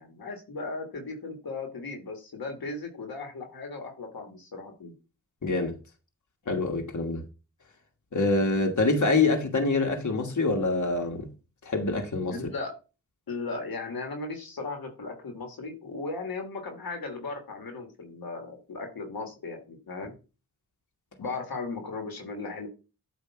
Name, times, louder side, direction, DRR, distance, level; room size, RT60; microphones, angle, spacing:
voice 1, 0.0-4.9 12.3-12.8 13.3-20.1 21.2-22.7, left 3 dB, 90° left, 1.5 m, -37 dB
voice 2, 5.4-5.7 6.5-7.2 8.1-11.3 11.6-12.3, left 3 dB, 55° left, 1.4 m, -25 dB
8.3 x 2.8 x 5.7 m
cardioid pair, 50°, 35 cm